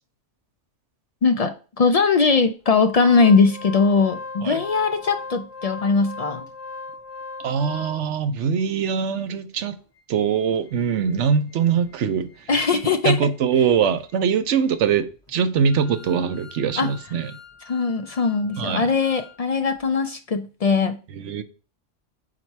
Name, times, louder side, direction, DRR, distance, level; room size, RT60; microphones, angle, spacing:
voice 1, 1.2-6.5 12.5-13.2 16.8-16.9 17.7-21.0, left 4 dB, 60° left, 0.4 m, -20 dB
Organ, 2.7-8.3 8.8-8.9 9.2-9.3 9.8-19.4 19.7-19.8, left 3 dB, 35° left, 2.2 m, -41 dB
voice 2, 7.4-9.8 10.1-12.3 13.0-17.3 18.6-18.9 21.1-21.4, right 7 dB, 80° right, 1.0 m, -22 dB
5.0 x 4.1 x 4.5 m
omnidirectional pair, 1.2 m